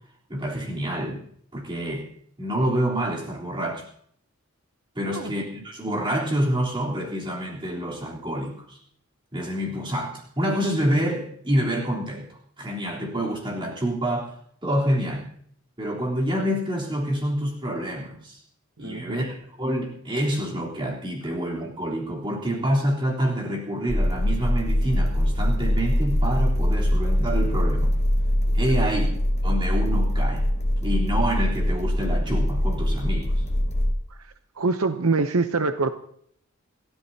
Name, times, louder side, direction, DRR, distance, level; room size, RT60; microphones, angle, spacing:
voice 1, 0.3-1.2 1.5-2.0 2.4-3.8 5.0-8.8 9.3-14.3 14.6-15.2 15.8-18.4 18.8-27.9 28.5-29.1 29.4-30.5 30.8-33.3, equal, 20° right, -3 dB, 3.6 m, -27 dB
voice 2, 18.8-19.3 34.6-35.9, right 3 dB, 75° right, 9 dB, 0.8 m, -24 dB
sound 1, 23.9-33.9, equal, 30° left, 1.0 m, -23 dB
29.0 x 13.0 x 2.8 m, 0.65 s
head